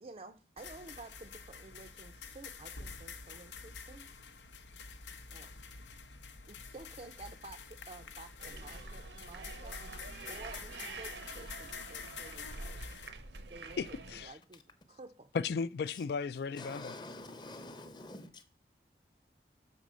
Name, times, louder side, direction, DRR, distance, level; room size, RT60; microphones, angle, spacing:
voice 1, 0.0-4.1 5.3-5.5 6.5-9.8 10.3-13.0 13.5-14.6 14.9-15.3, right 3 dB, 35° right, 0.4 m, -52 dB
sound 1, 0.6-13.1, left 5 dB, 90° left, 0.7 m, -48 dB
sound 2, 8.4-14.3, right 3 dB, 90° right, 0.9 m, -47 dB
voice 2, 13.8-14.3 15.3-16.9, left 5 dB, 65° left, 0.3 m, -35 dB
voice 3, 16.6-18.3, left 2 dB, 25° left, 0.8 m, -46 dB
6.7 x 4.0 x 6.2 m
head